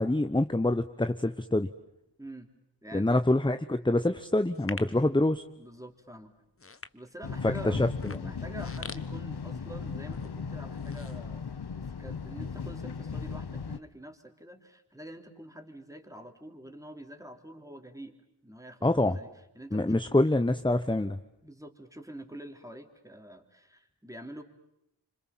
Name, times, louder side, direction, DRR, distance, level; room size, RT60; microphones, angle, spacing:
voice 1, 0.0-1.7 2.9-5.4 7.6-8.3 18.8-19.2 19.7-21.2, left 2 dB, 10° left, 9 dB, 0.9 m, -26 dB
voice 2, 2.2-2.5 2.8-3.2 4.8-5.0 5.6-6.3 6.9-7.9 8.2-11.5 11.7-18.2 18.4-20.3 21.4-24.4, right 1 dB, 5° right, 5 dB, 3.4 m, -46 dB
sound 1, 4.5-5.0 5.7-5.9 6.4-7.4 7.9-9.8 10.1-10.3 10.7-11.9 12.3-12.4, left 3 dB, 30° left, 1.2 m, -44 dB
sound 2, 7.2-13.8, left 5 dB, 60° left, 1.2 m, -37 dB
27.0 x 25.5 x 7.4 m, 0.82 s
cardioid pair, 40°, 44 cm